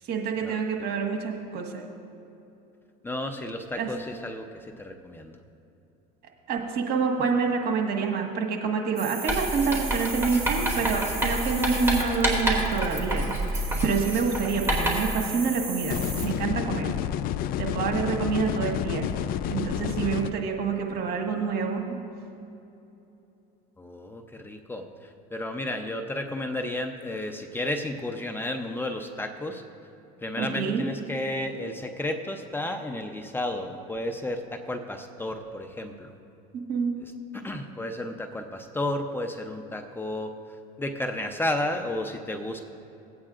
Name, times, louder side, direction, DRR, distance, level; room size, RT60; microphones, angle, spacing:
voice 1, 0.1-1.8 3.8-3.9 6.5-13.3 13.5-16.9 17.6-19.1 19.5-21.8 30.4-30.8 36.5-37.0, right 5 dB, 55° right, 2 dB, 1.6 m, -27 dB
voice 2, 3.0-5.4 23.8-29.6 30.2-36.1 37.3-40.3 40.8-42.6, left 1 dB, 10° left, 4 dB, 0.7 m, -32 dB
sound 1, 9.0-16.3, right 4 dB, 35° right, 1.7 m, -37 dB
Writing, 9.3-15.2, right 1 dB, 10° right, 2.5 m, -28 dB
sound 2, 15.9-20.3, left 11 dB, 50° left, 0.4 m, -29 dB
19.0 x 8.6 x 2.5 m, 2.8 s
supercardioid pair, 110°, 20 cm